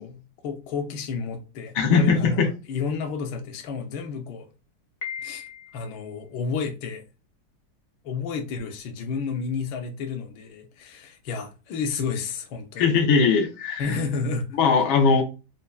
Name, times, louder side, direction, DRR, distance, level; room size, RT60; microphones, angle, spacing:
voice 1, 0.0-4.5 5.2-5.5 5.7-7.0 8.0-12.9 13.8-14.6, left 5 dB, 75° left, 1.4 m, -31 dB
voice 2, 1.7-2.5 12.8-13.9 14.6-15.2, left 5 dB, 90° left, 1.6 m, -20 dB
Piano, 5.0-6.0, left 7 dB, 55° left, 1.1 m, -37 dB
5.3 x 2.2 x 2.3 m
omnidirectional pair, 2.1 m